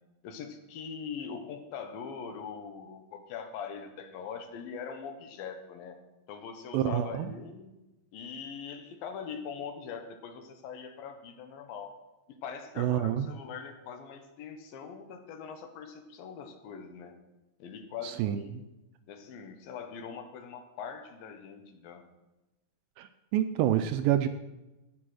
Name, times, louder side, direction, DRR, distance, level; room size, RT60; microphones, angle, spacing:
voice 1, 0.2-6.0 6.3-7.7 8.1-12.0 12.3-17.1 17.6-18.7 19.1-22.0, left 6 dB, 75° left, 7 dB, 2.7 m, -42 dB
voice 2, 6.7-7.3 12.8-13.3 18.0-18.6 23.0-24.3, right 11 dB, 80° right, 9 dB, 2.1 m, -28 dB
15.0 x 6.1 x 6.2 m, 1.0 s
omnidirectional pair, 4.4 m